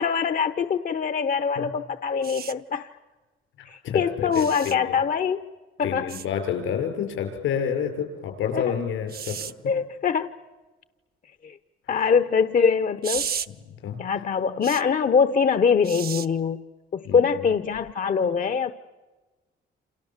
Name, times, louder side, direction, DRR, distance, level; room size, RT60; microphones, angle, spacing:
voice 1, 0.0-2.9 3.7-5.4 5.8-6.1 8.5-8.6 9.7-10.3 11.4-11.6 11.9-13.3 14.0-16.6 16.9-18.7, left 6 dB, 45° left, 12 dB, 0.9 m, -23 dB
sound 1, 2.2-2.5 4.3-4.7 6.1-6.3 9.1-9.5 13.0-13.5 14.6-14.8 15.8-16.3 17.7-17.9, right 8 dB, 50° right, 1.0 m, -33 dB
voice 2, 3.6-5.0 5.8-9.7 11.8-12.0 13.7-14.2 17.0-17.3, left 8 dB, 85° left, 5 dB, 6.2 m, -29 dB
28.5 x 27.5 x 7.4 m, 1.2 s
cardioid pair, 90°, 20 cm